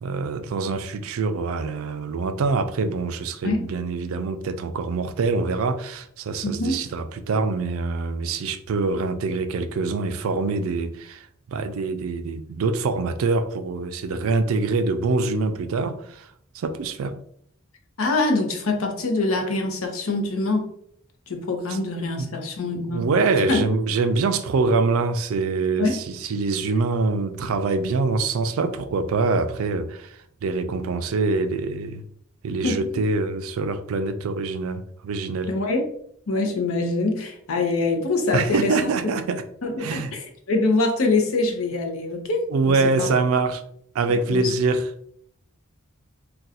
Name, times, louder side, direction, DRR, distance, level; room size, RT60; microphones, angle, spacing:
voice 1, 0.0-16.3 16.5-17.2 22.2-22.3 22.9-32.0 32.4-35.5 38.3-39.4 39.8-40.1 42.5-43.6 43.9-44.9, right 3 dB, 75° right, 0.3 m, -24 dB
voice 2, 6.4-6.8 18.0-20.7 21.3-23.1 23.5-23.7 25.8-26.0 32.6-32.8 35.5-35.9 36.3-38.9 39.6-43.1 44.3-44.5, left 2 dB, 75° left, 0.7 m, -24 dB
2.5 x 2.3 x 4.0 m
head